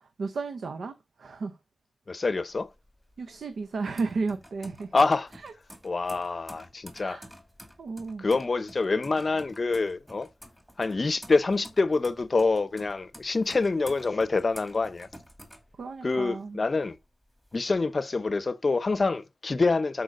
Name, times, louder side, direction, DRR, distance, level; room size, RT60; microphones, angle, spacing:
voice 1, 0.2-1.5 3.2-4.9 5.4-5.5 6.9-7.3 7.8-8.3 15.8-16.6, right 4 dB, 90° right, 0.6 m, -33 dB
voice 2, 2.1-2.7 4.9-5.3 5.8-7.2 8.2-10.3 10.8-15.1 16.0-16.9 17.5-20.0, left 3 dB, 55° left, 0.6 m, -26 dB
sound 1, 2.5-16.3 16.7-17.6, equal, 5° right, 2.2 m, -50 dB
13.0 x 4.4 x 2.5 m
cardioid pair, 55°, 0 cm